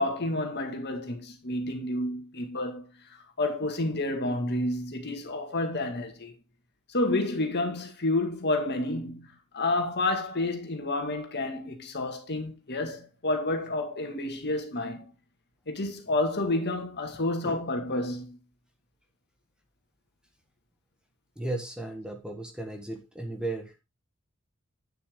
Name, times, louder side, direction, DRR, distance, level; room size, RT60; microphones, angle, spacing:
voice 1, 0.0-2.9 3.4-6.3 6.9-15.0 15.7-18.4, left 2 dB, 50° left, 2.0 m, -30 dB
voice 2, 17.1-17.6 21.4-23.7, right 2 dB, 5° right, 1.4 m, -35 dB
9.2 x 7.0 x 3.7 m
head